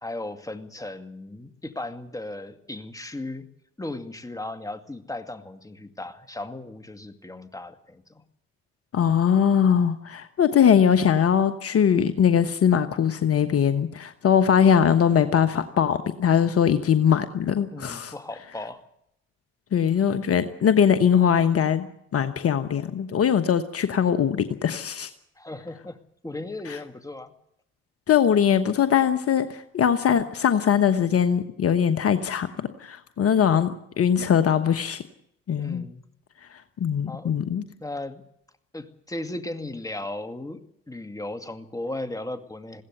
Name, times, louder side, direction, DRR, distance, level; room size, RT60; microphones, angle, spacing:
voice 1, 0.0-3.4 3.8-8.2 17.7-18.8 25.4-27.3 35.6-36.0 37.1-37.3 37.8-38.2 38.7-42.8, left 2 dB, 10° left, 7 dB, 2.2 m, -36 dB
voice 2, 8.9-18.1 19.7-21.9 22.1-25.1 26.7-26.8 28.1-35.0 35.5-35.9 36.8-37.6, left 8 dB, 50° left, 10 dB, 1.1 m, -21 dB
21.0 x 16.5 x 8.0 m, 0.78 s
hypercardioid pair, 45°, 31 cm